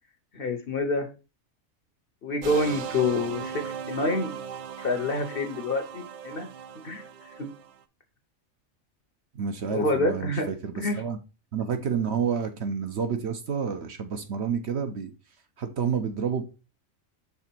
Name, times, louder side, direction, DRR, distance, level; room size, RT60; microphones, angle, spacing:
voice 1, 0.3-1.1 2.2-3.6 3.9-4.3 4.8-6.5 6.8-7.0 7.4-7.5 9.7-10.5 10.7-11.0, left 2 dB, 50° left, 0.9 m, -27 dB
sound 1, 2.4-7.7, right 7 dB, 75° right, 0.4 m, -38 dB
voice 2, 9.3-11.2 11.5-15.1 15.6-16.4, right 7 dB, 60° right, 1.0 m, -29 dB
5.9 x 3.7 x 4.4 m
omnidirectional pair, 1.4 m